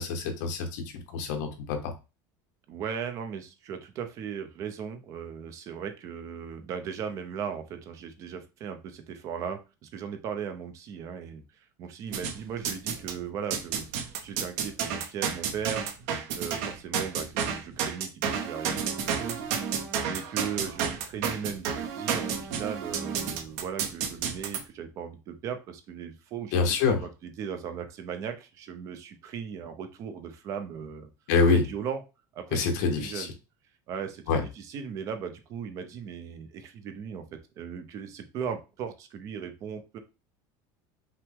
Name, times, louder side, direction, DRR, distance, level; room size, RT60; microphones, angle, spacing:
voice 1, 0.0-1.8 26.5-27.0 31.3-31.6 32.5-33.3 34.3-34.4, left 4 dB, 70° left, 5 dB, 1.1 m, -25 dB
voice 2, 2.7-11.4 11.8-13.9 14.2-15.9 16.3-19.4 20.1-31.1 31.5-32.0 32.3-32.7 33.0-33.3 33.9-40.0, right 7 dB, 30° right, 8 dB, 0.6 m, -37 dB
sound 1, 12.1-13.2 13.5-24.6, right 7 dB, 65° right, 0.8 m, -31 dB
5.7 x 2.2 x 3.6 m, 0.28 s
cardioid pair, 180°, 10 cm